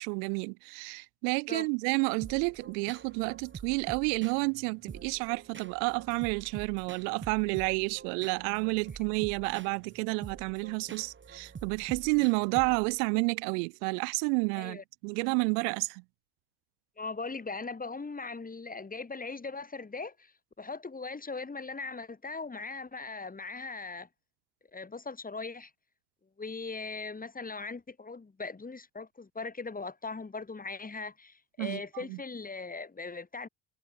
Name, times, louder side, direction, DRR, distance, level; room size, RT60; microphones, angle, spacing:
voice 1, 0.0-16.0 31.6-31.8 32.1-32.2, right 39 dB, 85° right, 1.0 m, -30 dB
sound 1, 2.2-13.1, right 6 dB, 25° right, 2.5 m, -47 dB
voice 2, 17.0-20.3 20.6-24.1 24.7-25.7 26.4-33.5, left 4 dB, 15° left, 6.2 m, -39 dB
supercardioid pair, 110°, 48 cm